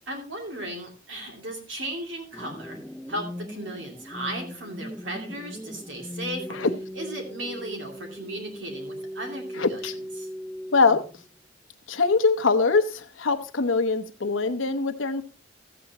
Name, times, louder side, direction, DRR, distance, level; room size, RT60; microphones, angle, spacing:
voice 1, 0.1-2.8 3.1-6.6 6.9-9.8 10.2-10.3, right 1 dB, 70° right, 1 dB, 2.5 m, -36 dB
sound 1, 2.3-11.3, equal, ahead, 0.5 m, -39 dB
voice 2, 9.6-9.9 10.7-11.0 11.9-15.2, left 4 dB, 85° left, 8 dB, 0.9 m, -23 dB
14.0 x 8.5 x 2.9 m, 0.34 s
head